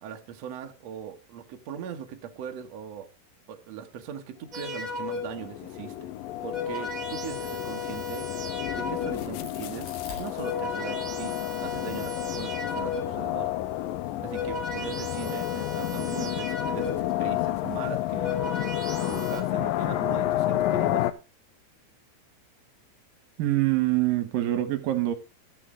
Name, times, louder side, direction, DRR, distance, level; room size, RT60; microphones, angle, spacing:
voice 1, 0.0-3.1 3.5-6.1 6.4-8.5 8.8-13.5 14.2-18.4 18.9-21.1, right 9 dB, 85° right, 1.4 m, -40 dB
sound 1, 4.5-5.5 6.2-9.4 10.1-13.3 14.0-17.2 17.9-19.4, left 3 dB, 30° right, 1.8 m, -35 dB
sound 2, 4.9-21.1, left 14 dB, 85° left, 2.0 m, -30 dB
Crack, 8.5-11.0 11.5-13.2, left 2 dB, 45° left, 5.3 m, -48 dB
voice 2, 23.4-25.1, right 15 dB, 70° right, 2.4 m, -24 dB
15.0 x 8.4 x 3.7 m
omnidirectional pair, 5.0 m